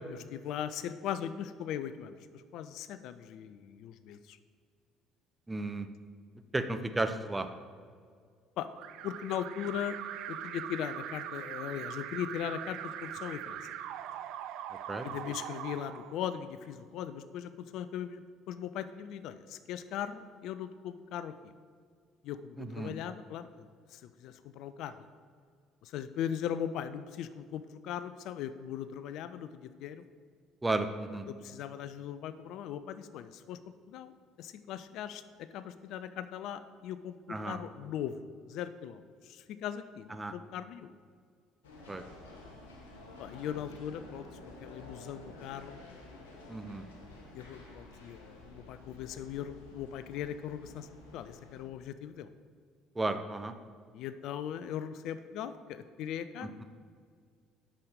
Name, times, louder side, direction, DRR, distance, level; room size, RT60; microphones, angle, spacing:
voice 1, 0.3-4.4 8.6-8.7 9.0-10.0 10.3-13.7 15.0-21.5 22.2-25.1 25.8-30.0 31.3-33.6 33.9-38.2 38.5-40.9 43.2-44.3 44.6-45.8 47.3-52.3 53.9-56.5, left 9 dB, 55° left, 13 dB, 0.3 m, -39 dB
voice 2, 5.5-5.9 6.5-7.5 14.9-15.1 22.6-22.9 30.6-31.3 37.3-37.6 40.1-40.3 41.9-42.0 46.5-46.9 53.0-53.5 56.6-56.7, right 2 dB, 15° right, 8 dB, 0.6 m, -33 dB
Alarm, 8.8-16.7, right 11 dB, 55° right, 0.3 m, -41 dB
sound 1, 41.6-51.6, left 2 dB, 70° left, 1.1 m, -51 dB
8.4 x 6.2 x 4.9 m, 2.1 s
figure-of-eight pair, 55°, 0 cm